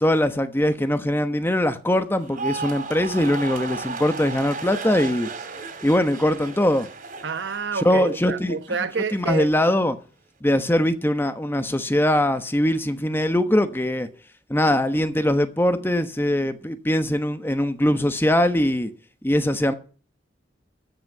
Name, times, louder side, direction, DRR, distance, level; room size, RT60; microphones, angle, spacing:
voice 1, 0.0-5.3 5.8-6.9 7.8-8.6 9.1-10.0 10.4-14.1 14.5-18.9 19.2-19.7, left 1 dB, 15° left, 1.1 m, -21 dB
sound 1, 2.2-8.5 8.8-9.3, right 4 dB, 50° right, 3.0 m, -35 dB
voice 2, 7.2-9.5, right 4 dB, 85° right, 1.0 m, -28 dB
13.0 x 6.3 x 7.4 m
head